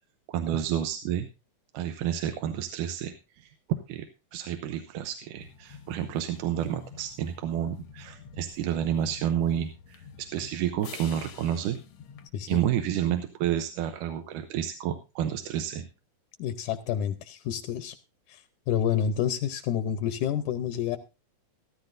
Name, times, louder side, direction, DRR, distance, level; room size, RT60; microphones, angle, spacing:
voice 1, 0.3-1.3 1.7-3.5 3.9-4.1 4.3-11.8 12.5-15.9, right 10 dB, 85° right, 8 dB, 2.4 m, -30 dB
sound 1, 5.4-12.3, left 6 dB, 60° left, 1.4 m, -48 dB
voice 2, 16.4-18.0 18.3-18.4 18.7-21.0, left 9 dB, 80° left, 10 dB, 2.2 m, -29 dB
14.0 x 14.0 x 2.6 m, 0.27 s
omnidirectional pair, 3.6 m